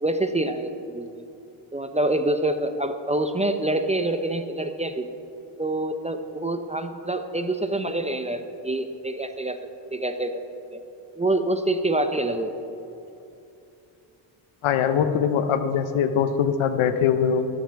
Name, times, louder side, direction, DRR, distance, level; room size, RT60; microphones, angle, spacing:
voice 1, 0.0-1.2 1.7-5.1 5.6-9.6 9.9-10.4 10.7-10.8 11.2-12.5, right 1 dB, 15° right, 8 dB, 0.5 m, -26 dB
voice 2, 14.6-17.5, left 7 dB, 75° left, 9 dB, 0.9 m, -22 dB
17.0 x 6.9 x 4.6 m, 2.7 s
cardioid pair, 85°, 49 cm